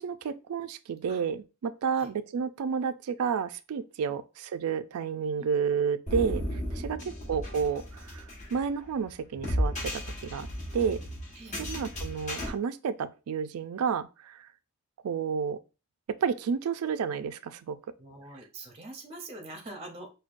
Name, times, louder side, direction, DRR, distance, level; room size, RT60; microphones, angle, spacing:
voice 1, 0.0-8.2 8.5-10.5 10.7-11.0 11.6-14.5 15.0-15.6 16.2-17.8, right 6 dB, 90° right, 0.4 m, -31 dB
sound 1, 6.1-12.5, equal, 35° left, 1.2 m, -34 dB
voice 2, 18.0-20.1, right 2 dB, 30° right, 0.6 m, -45 dB
5.1 x 2.2 x 2.5 m
head